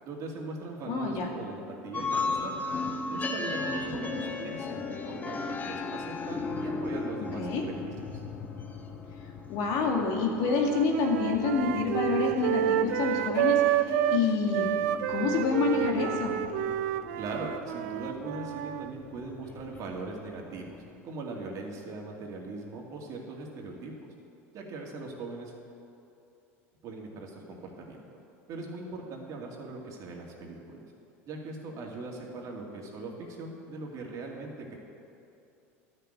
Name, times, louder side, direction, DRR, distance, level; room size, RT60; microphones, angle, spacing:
voice 1, 0.0-2.6 3.1-8.2 17.1-23.9 24.5-25.5 26.8-28.0 28.5-30.8 31.2-34.7, right 3 dB, 50° right, 0 dB, 2.4 m, -40 dB
voice 2, 0.9-1.3 7.4-7.6 9.5-13.8 14.1-14.7 15.1-16.4, left 4 dB, 65° left, 1 dB, 2.0 m, -27 dB
sound 1, 1.9-21.0, left 3 dB, 25° left, 1.3 m, -37 dB
sound 2, 10.4-14.2 14.5-18.9, right 11 dB, 75° right, 0.5 m, -29 dB
12.5 x 6.7 x 8.9 m, 2.7 s
hypercardioid pair, 95°, 7 cm